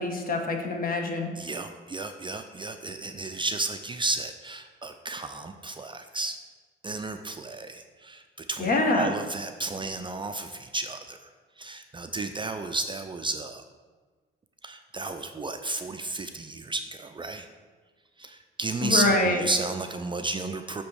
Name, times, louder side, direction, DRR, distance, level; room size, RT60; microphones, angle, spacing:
voice 1, 0.0-1.3 8.6-9.1 18.8-19.4, left 2 dB, 45° left, 2 dB, 1.2 m, -25 dB
voice 2, 1.4-6.3 6.8-11.2 11.6-13.6 14.6-17.5 18.2-20.8, right 2 dB, 25° right, 6 dB, 0.4 m, -33 dB
8.4 x 3.0 x 6.2 m, 1.4 s
cardioid pair, 90°, 20 cm